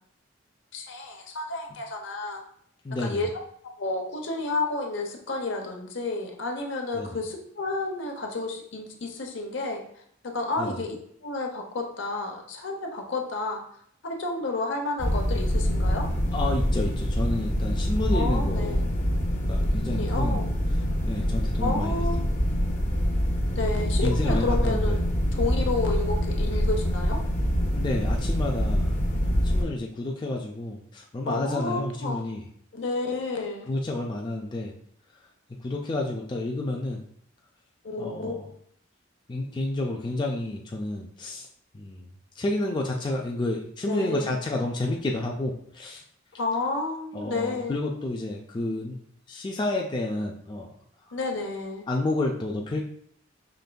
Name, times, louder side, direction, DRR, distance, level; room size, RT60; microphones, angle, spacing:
voice 1, 0.7-2.4 3.0-3.3 3.8-9.8 10.3-11.0 11.2-13.6 14.0-16.1 18.1-18.9 19.7-20.5 21.6-22.2 23.6-25.0 25.3-27.2 31.3-32.3 32.7-33.7 37.8-38.5 43.8-44.4 46.4-47.8 51.1-51.8, left 3 dB, 70° left, 2 dB, 0.7 m, -31 dB
voice 2, 2.8-3.3 6.9-7.2 10.6-10.8 16.3-18.9 19.5-20.5 21.1-21.9 24.0-25.0 27.7-29.0 29.4-32.4 33.7-34.7 35.6-37.0 38.0-38.5 39.3-41.5 41.7-42.1 42.4-46.0 47.1-49.0 49.3-50.7 51.9-52.8, left 2 dB, 25° left, 0 dB, 0.3 m, -30 dB
sound 1, 15.0-29.6, equal, 40° left, 0.7 m, -25 dB
5.1 x 3.3 x 2.2 m, 0.65 s
head